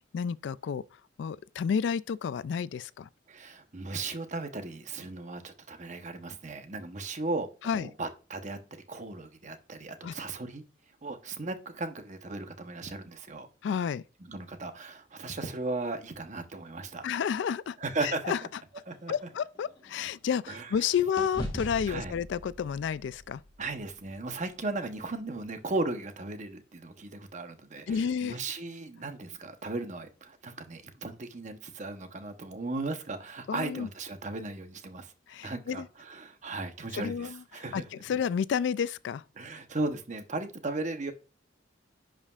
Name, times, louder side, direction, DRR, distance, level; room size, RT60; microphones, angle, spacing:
voice 1, 0.1-0.8 1.2-3.1 7.6-7.9 10.0-10.1 13.6-14.0 17.0-17.8 18.0-18.4 19.1-23.4 27.9-28.4 33.5-33.9 35.3-35.9 36.9-39.2, left 7 dB, 65° left, 0.3 m, -31 dB
voice 2, 3.3-10.6 11.0-13.5 14.2-17.1 17.8-18.3 18.9-19.1 20.5-20.9 21.9-22.2 23.6-35.1 35.4-38.0 39.4-41.1, right 3 dB, 40° right, 0.9 m, -36 dB
sound 1, 18.5-20.8 21.2-25.4, equal, 25° left, 1.5 m, -42 dB
11.0 x 5.0 x 2.4 m
head